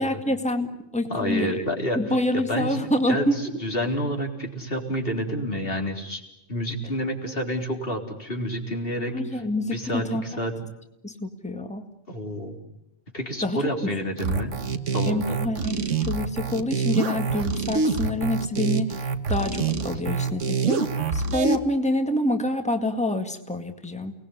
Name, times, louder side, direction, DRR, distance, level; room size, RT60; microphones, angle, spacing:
voice 1, 0.0-1.6 1.9-3.6 9.1-10.3 11.0-11.8 13.4-14.0 15.1-24.1, left 1 dB, 5° left, 5 dB, 1.9 m, -27 dB
voice 2, 1.1-2.0 2.3-3.3 3.6-6.2 6.5-9.2 9.7-10.5 12.1-12.6 13.1-14.5 14.9-15.4, equal, 50° left, 2 dB, 4.1 m, -29 dB
sound 1, 14.2-21.6, right 5 dB, 80° right, 1.7 m, -26 dB
30.0 x 20.0 x 9.9 m, 0.87 s
omnidirectional pair, 1.3 m